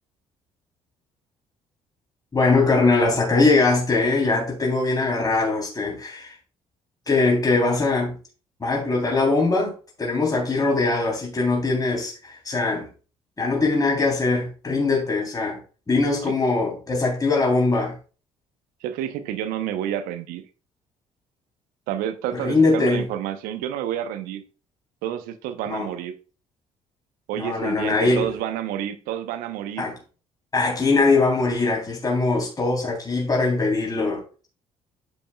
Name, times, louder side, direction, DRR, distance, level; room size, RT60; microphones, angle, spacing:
voice 1, 2.3-6.4 7.1-8.2 8.6-12.9 13.4-15.6 15.9-18.0 22.3-23.0 25.7-25.9 27.4-28.3 29.8-30.0 30.5-34.5, left 3 dB, 25° left, 3.5 m, -21 dB
voice 2, 18.8-20.4 21.9-24.4 25.0-26.2 27.3-29.8, right 11 dB, 70° right, 0.9 m, -29 dB
9.1 x 8.2 x 2.3 m
hypercardioid pair, 50°, 15 cm